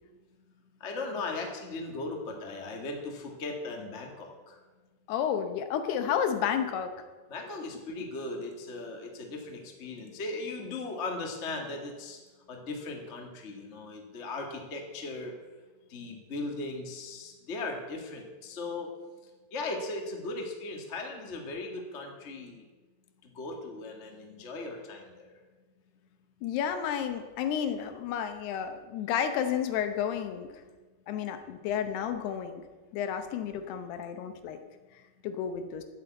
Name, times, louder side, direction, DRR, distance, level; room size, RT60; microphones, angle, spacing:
voice 1, 0.8-4.5 7.3-12.2 12.5-15.3 15.9-18.9 19.5-22.6 23.3-25.3, left 2 dB, 35° left, 1 dB, 1.1 m, -38 dB
voice 2, 5.1-6.9 26.4-30.6 31.1-32.6 32.9-34.6 35.2-35.8, left 8 dB, 80° left, 8 dB, 2.9 m, -31 dB
12.0 x 9.1 x 7.9 m, 1.3 s
omnidirectional pair, 4.8 m